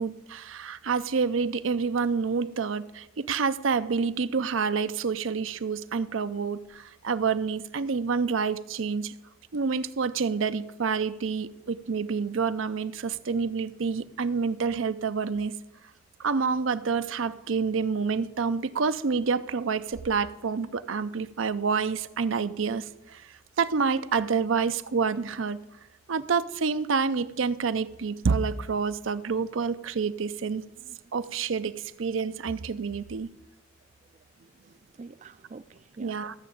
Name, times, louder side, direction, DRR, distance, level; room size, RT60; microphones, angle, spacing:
voice 1, 0.0-9.1 9.5-15.5 16.2-25.6 26.1-30.6 31.1-33.3 36.0-36.3, right 5 dB, 85° right, 0.6 m, -28 dB
voice 2, 34.1-36.2, right 4 dB, 35° right, 0.3 m, -48 dB
14.0 x 6.6 x 8.5 m
head